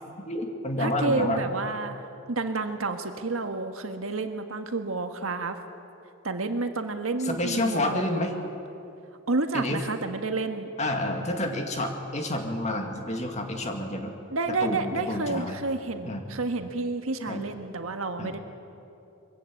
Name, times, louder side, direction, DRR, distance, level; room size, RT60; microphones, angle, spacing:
voice 1, 0.2-1.4 7.2-8.3 9.5-9.8 10.8-14.1 14.6-15.6 16.0-16.2 17.3-17.5 18.2-18.4, left 1 dB, 35° left, 4 dB, 2.2 m, -29 dB
voice 2, 0.8-2.0 2.3-5.6 6.2-8.1 9.3-10.7 14.3-18.4, right 3 dB, 85° right, 6 dB, 1.5 m, -30 dB
23.0 x 15.5 x 8.7 m, 2.7 s
head